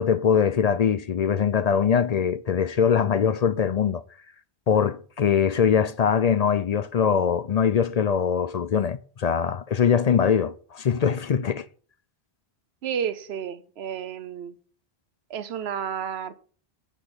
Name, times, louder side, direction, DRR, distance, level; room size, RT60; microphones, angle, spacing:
voice 1, 0.0-4.0 4.7-11.7, left 7 dB, 50° left, 0.5 m, -22 dB
voice 2, 12.8-14.5 15.3-16.3, right 8 dB, 85° right, 1.0 m, -31 dB
8.3 x 6.2 x 6.9 m
omnidirectional pair, 1.1 m